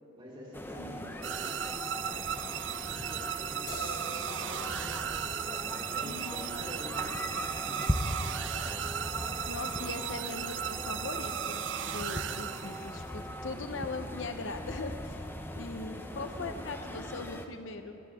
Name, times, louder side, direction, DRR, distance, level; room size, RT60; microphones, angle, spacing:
voice 1, 0.1-5.1 5.6-8.0 12.0-12.4 15.3-17.4, left 1 dB, 25° right, -5 dB, 3.6 m, -49 dB
sound 1, 0.5-17.5, left 1 dB, 10° left, 0.7 m, -39 dB
voice 2, 0.8-1.2 6.0-6.7 9.4-11.6 11.9-15.2 15.5-18.0, left 3 dB, 75° left, 8 dB, 0.9 m, -40 dB
sound 2, 1.2-13.1, right 10 dB, 65° right, 0.4 m, -36 dB
sound 3, 3.7-11.0, left 2 dB, 45° left, 4.2 m, -50 dB
19.5 x 16.5 x 3.7 m, 2.8 s
head